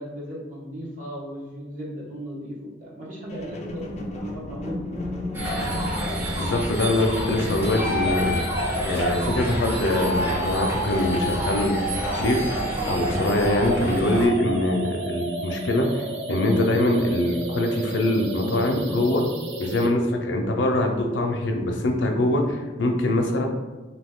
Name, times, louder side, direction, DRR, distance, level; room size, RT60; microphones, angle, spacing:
voice 1, 0.0-5.0, equal, 45° right, -6 dB, 1.1 m, -36 dB
sound 1, 3.3-10.7 11.3-11.4, left 2 dB, 40° left, 0.4 m, -36 dB
sound 2, 5.3-14.3, equal, 10° right, 0.7 m, -28 dB
voice 2, 6.4-8.3 8.8-11.8 12.1-12.5 12.8-19.3 19.6-23.5, left 1 dB, 85° left, 3 dB, 0.5 m, -23 dB
sound 3, 9.9-19.9, right 3 dB, 90° right, 0.5 m, -32 dB
2.8 x 2.3 x 3.5 m, 1.2 s
head